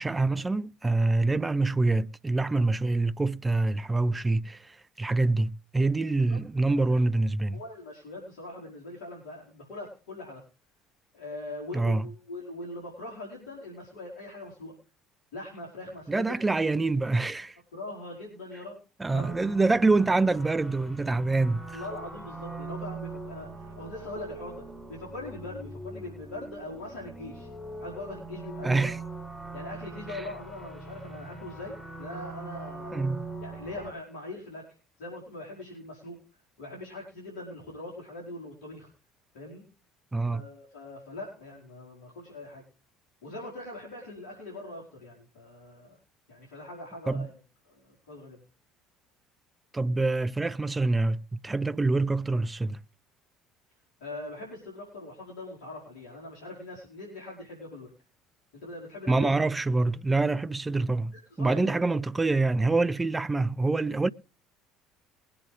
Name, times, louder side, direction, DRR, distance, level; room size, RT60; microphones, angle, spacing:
voice 1, 0.0-7.6 11.7-12.1 16.1-17.6 19.0-21.8 28.6-29.0 30.1-30.2 32.9-33.3 40.1-40.4 47.1-47.3 49.7-52.8 59.1-64.1, right 3 dB, 15° right, 0.5 m, -26 dB
voice 2, 6.3-6.9 7.5-10.4 11.1-14.7 15.3-16.6 17.7-18.8 19.1-19.3 21.7-27.5 27.8-29.1 29.5-33.1 33.4-34.7 35.0-36.2 36.6-38.9 39.3-39.7 40.2-42.6 43.2-46.0 46.3-47.3 47.7-48.4 54.0-57.9 58.5-59.5 61.1-61.8, left 2 dB, 70° left, 4.8 m, -42 dB
sound 1, 19.1-33.9, right 3 dB, ahead, 6.9 m, -41 dB
21.0 x 8.6 x 3.4 m
hypercardioid pair, 60°, 0 cm